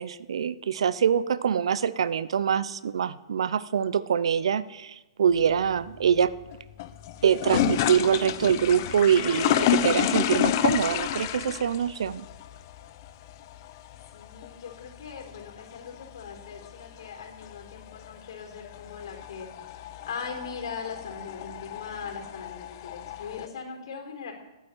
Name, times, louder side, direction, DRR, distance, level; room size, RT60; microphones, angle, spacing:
voice 1, 0.0-6.3 7.2-12.2, right 8 dB, 70° right, 17 dB, 0.7 m, -24 dB
sound 1, 5.3-23.5, left 11 dB, 35° left, 0.7 m, -31 dB
voice 2, 14.1-24.3, left 6 dB, 60° left, 2 dB, 4.1 m, -40 dB
11.5 x 9.2 x 8.8 m, 1.1 s
hypercardioid pair, 160°, 3 cm